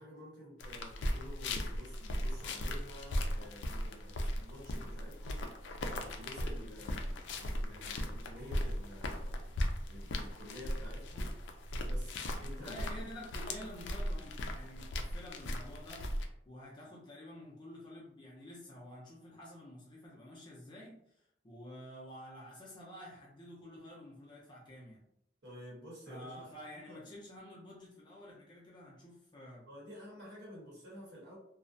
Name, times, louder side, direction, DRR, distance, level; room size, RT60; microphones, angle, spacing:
voice 1, 0.0-5.6 5.9-9.4 9.8-11.3 11.8-13.0 25.4-27.0 29.7-31.4, equal, 70° right, -6 dB, 1.0 m, -51 dB
sound 1, 0.6-16.3, left 1 dB, 75° left, 0.4 m, -38 dB
voice 2, 12.6-16.0 16.4-25.0 26.1-29.6, equal, 25° left, -5 dB, 0.5 m, -50 dB
2.4 x 2.0 x 2.5 m, 0.72 s
head